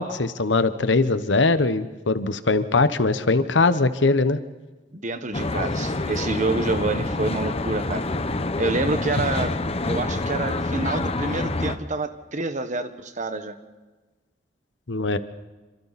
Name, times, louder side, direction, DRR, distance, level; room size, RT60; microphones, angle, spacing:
voice 1, 0.0-4.4 14.9-15.2, left 3 dB, 75° left, 12 dB, 1.1 m, -21 dB
voice 2, 4.9-8.1 8.6-9.5 9.9-13.5, right 2 dB, 45° right, 9 dB, 1.4 m, -27 dB
Traffic noise roadway noise, 5.3-11.8, left 2 dB, 35° left, 1.1 m, -27 dB
28.0 x 26.0 x 4.2 m, 1.2 s
head